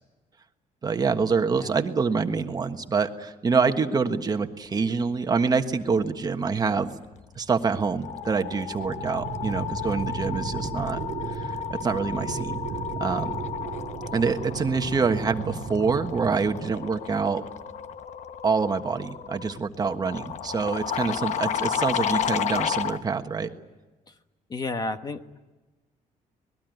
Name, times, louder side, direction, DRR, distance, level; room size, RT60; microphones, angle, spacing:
voice 1, 0.8-6.9 7.4-11.0 11.3-12.6 13.0-13.4 14.1-17.4 18.4-23.5, right 5 dB, 30° right, 6 dB, 1.4 m, -26 dB
sound 1, 7.2-7.5 7.8-23.0, left 8 dB, 55° left, 1.0 m, -32 dB
sound 2, 8.7-16.7, right 6 dB, 85° right, 1.8 m, -35 dB
voice 2, 24.5-25.4, left 3 dB, 30° left, 9 dB, 1.2 m, -32 dB
26.0 x 20.5 x 9.3 m, 1.2 s
cardioid pair, 140°, 14 cm